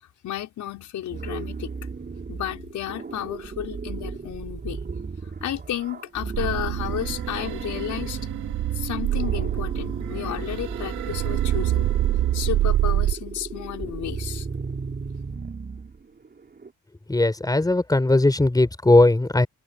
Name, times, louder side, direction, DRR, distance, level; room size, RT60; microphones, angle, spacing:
voice 1, 0.2-1.7 2.3-4.8 5.4-8.2 8.7-11.9 12.3-14.5, left 11 dB, 75° left, 5.5 m, -32 dB
sound 1, 1.1-16.7, right 4 dB, 35° right, 4.7 m, -35 dB
sound 2, 6.3-13.1, right 13 dB, 85° right, 2.1 m, -26 dB
voice 2, 17.1-19.5, left 2 dB, 10° left, 4.7 m, -18 dB
cardioid pair, 90°, 30 cm